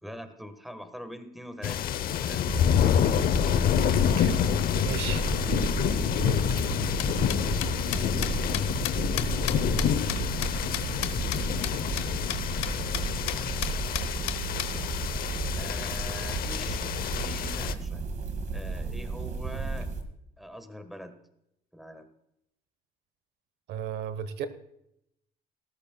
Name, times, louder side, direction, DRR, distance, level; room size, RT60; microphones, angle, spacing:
voice 1, 0.0-2.5 15.5-16.8 17.1-18.0 18.5-19.9 20.4-21.1 21.7-22.1, equal, ahead, 9 dB, 1.4 m, -44 dB
sound 1, 1.6-17.7, left 9 dB, 60° left, 0.8 m, -28 dB
sound 2, 2.5-20.0, right 4 dB, 45° right, 1.9 m, -33 dB
voice 2, 4.1-4.5 4.8-5.7 6.2-6.4 23.7-24.5, right 8 dB, 80° right, 12 dB, 1.1 m, -35 dB
sound 3, 6.7-11.4 11.6-11.7 12.0-12.1 12.3-12.4 12.6-13.0 13.3-13.4 13.6-14.7, left 14 dB, 90° left, 1.1 m, -32 dB
18.0 x 13.5 x 2.3 m, 0.80 s
cardioid pair, 110°, 17 cm